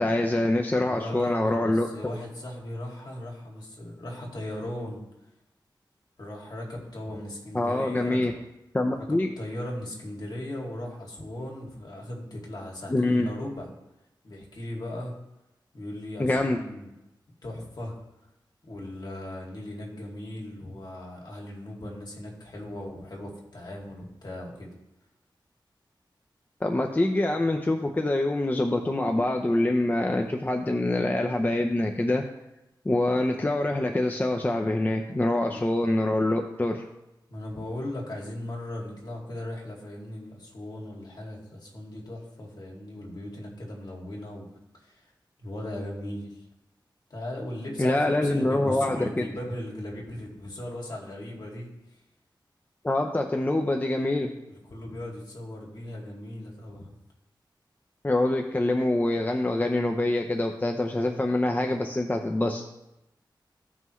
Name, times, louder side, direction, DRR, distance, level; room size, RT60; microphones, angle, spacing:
voice 1, 0.0-1.9 7.5-8.3 8.7-9.3 12.9-13.3 16.2-16.6 26.6-32.2 32.8-36.8 47.8-49.3 52.8-54.3 58.0-62.6, left 1 dB, 20° left, 3 dB, 0.7 m, -25 dB
voice 2, 0.9-5.0 6.2-8.4 9.0-13.7 14.2-15.1 15.7-16.9 17.4-17.9 18.7-24.7 35.5-35.7 37.3-44.5 44.7-45.0 45.4-46.4 47.1-52.0 54.5-56.9, left 1 dB, 55° left, -2 dB, 2.4 m, -38 dB
15.5 x 5.6 x 3.2 m, 0.91 s
wide cardioid pair, 110°, 8 cm